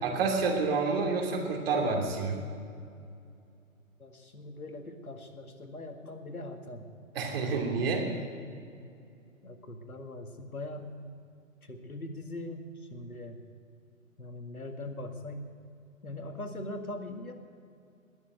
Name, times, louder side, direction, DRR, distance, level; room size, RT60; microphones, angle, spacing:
voice 1, 0.0-2.4 7.1-8.1, right 4 dB, 45° right, 1 dB, 2.8 m, -28 dB
voice 2, 4.0-6.9 7.7-8.0 9.4-10.9 11.6-13.4 14.2-15.4 16.0-17.3, left 1 dB, 85° left, 6 dB, 1.9 m, -41 dB
20.0 x 7.2 x 9.0 m, 2.4 s
figure-of-eight pair, 135°, 42 cm